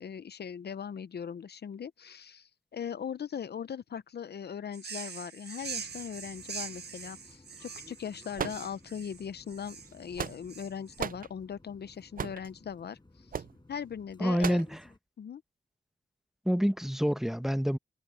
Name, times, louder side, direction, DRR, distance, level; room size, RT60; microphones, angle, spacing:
voice 1, 0.0-13.4 13.7-14.6 15.2-15.4, left 7 dB, 65° left, 0.6 m, -40 dB
sound 1, 4.7-11.0, right 6 dB, 70° right, 1.5 m, -43 dB
sound 2, 5.6-15.0, left 2 dB, 25° left, 8.0 m, -58 dB
sound 3, 8.4-9.1 9.9-10.6 11.0-11.3 12.2-12.5 13.3-13.6 14.4-14.7, right 7 dB, 55° right, 0.5 m, -36 dB
voice 2, 14.2-14.8 16.4-17.8, equal, ahead, 1.2 m, -27 dB
wide cardioid pair, 80°, 18 cm